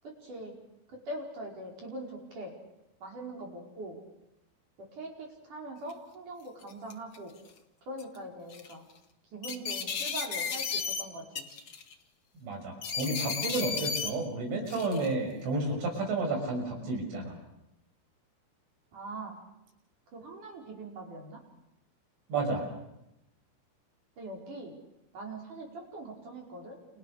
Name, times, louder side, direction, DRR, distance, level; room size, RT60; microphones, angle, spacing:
voice 1, 0.0-0.5 0.9-2.5 3.0-4.0 4.8-7.3 7.9-8.9 9.3-11.5 18.9-19.4 20.1-21.4 24.2-24.8 25.1-26.8, right 1 dB, 40° right, 0 dB, 6.0 m, -42 dB
sound 1, 5.9-6.0 6.6-7.2 8.0-8.2 8.5-8.7 9.4-11.0 11.3-11.9 12.8-14.1 14.7-15.1, left 6 dB, 70° left, 1.1 m, -34 dB
voice 2, 12.4-17.4 22.3-22.6, right 2 dB, 70° right, 2 dB, 8.4 m, -31 dB
30.0 x 29.5 x 6.6 m, 0.87 s
omnidirectional pair, 5.7 m